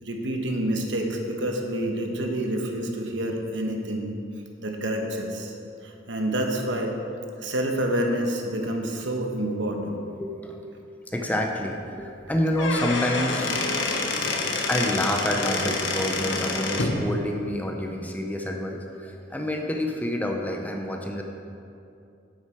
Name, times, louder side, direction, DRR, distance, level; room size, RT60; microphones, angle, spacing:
voice 1, 0.0-4.1 4.6-5.5 5.8-7.0 7.4-10.0, right 1 dB, 65° right, 2 dB, 1.1 m, -28 dB
voice 2, 9.3-9.7 10.0-10.7 11.1-13.6 14.7-21.2, left 1 dB, 10° left, 2 dB, 0.6 m, -28 dB
Squeak / Wood, 12.4-17.0, left 3 dB, 75° left, 1.0 m, -27 dB
9.5 x 7.8 x 4.5 m, 2.6 s
head